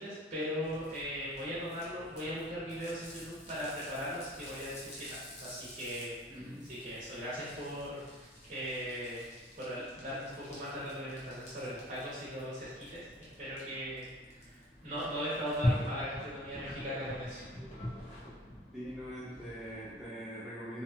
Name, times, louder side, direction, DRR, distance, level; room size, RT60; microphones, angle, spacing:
voice 1, 0.0-9.2 9.6-13.0 13.4-17.5, equal, 40° right, -10 dB, 0.7 m, -39 dB
sound 1, 0.6-20.1, equal, 40° left, 0.7 m, -43 dB
voice 2, 6.3-6.7 18.7-20.8, equal, ahead, -10 dB, 0.4 m, -43 dB
2.8 x 2.2 x 2.7 m, 1.3 s
head